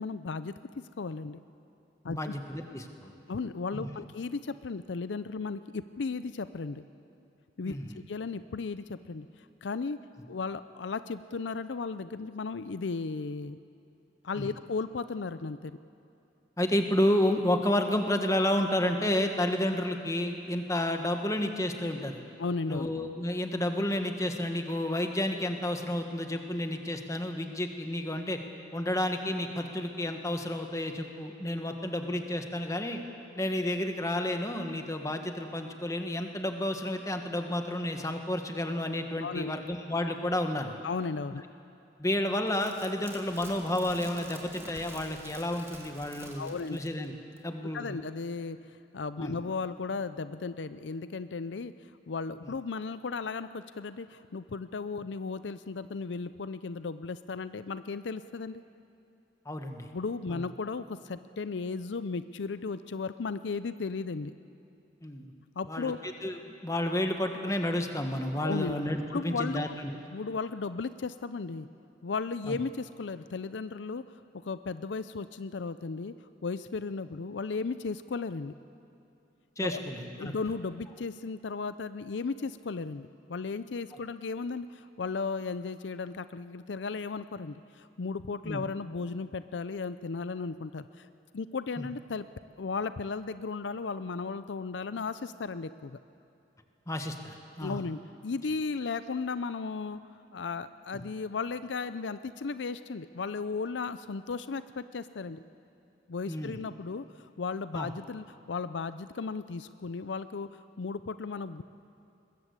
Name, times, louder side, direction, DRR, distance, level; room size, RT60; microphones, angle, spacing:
voice 1, 0.0-1.4 2.0-2.3 3.3-6.8 7.6-9.3 9.6-10.0 10.3-13.6 14.2-15.8 22.4-22.9 39.2-39.5 40.8-41.4 46.4-46.8 47.7-48.6 48.9-51.7 52.1-58.6 59.9-64.3 65.6-66.1 68.3-68.8 69.1-69.8 70.1-71.7 72.0-76.1 76.4-78.5 79.6-79.8 80.2-91.1 91.3-92.3 92.6-96.0 97.6-100.0 100.3-105.4 106.1-111.6, left 4 dB, 85° left, 13 dB, 0.5 m, -35 dB
voice 2, 2.1-3.1 3.7-3.9 7.6-8.0 14.4-14.5 16.6-22.2 22.7-28.4 28.7-33.0 33.4-40.7 42.0-47.1 47.4-48.0 49.2-49.3 59.4-59.9 60.3-60.4 65.0-65.3 65.7-65.9 66.2-69.9 72.5-72.6 79.6-80.3 88.4-88.6 91.8-91.9 96.9-97.8 106.3-106.6 107.7-107.9, left 1 dB, 20° left, 5 dB, 1.6 m, -31 dB
sound 1, 42.5-47.1 47.4-47.5, right 2 dB, 15° right, 2.5 m, -48 dB
21.5 x 21.0 x 8.2 m, 2.6 s
head